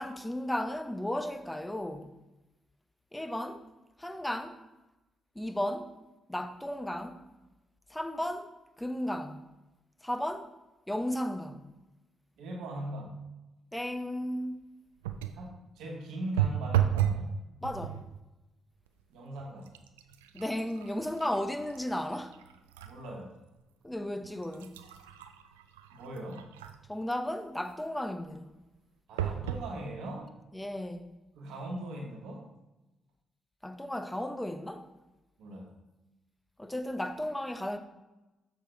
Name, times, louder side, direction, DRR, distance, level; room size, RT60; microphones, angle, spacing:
voice 1, 0.0-2.1 3.1-3.6 4.0-4.6 5.4-5.9 6.3-7.2 7.9-8.5 8.8-9.4 10.0-10.5 10.9-11.7 13.7-14.7 17.6-18.0 20.3-22.4 23.8-24.7 26.9-28.5 30.5-31.1 33.6-34.9 36.6-37.8, left 1 dB, 10° left, 0.8 m, -34 dB
voice 2, 12.4-13.2 15.3-17.3 19.1-19.7 22.8-23.4 25.9-26.5 29.1-30.3 31.3-32.5 35.4-35.7, right 1 dB, 75° right, 1.2 m, -40 dB
sound 1, 15.0-15.5 16.4-17.3 17.6-18.1 18.9-19.0 19.4-23.0 23.5-23.6 24.2-27.0 29.2-29.7 30.4-30.5 30.7-30.8, right 10 dB, 90° right, 0.3 m, -33 dB
6.8 x 5.0 x 4.5 m
hypercardioid pair, 45°, 0 cm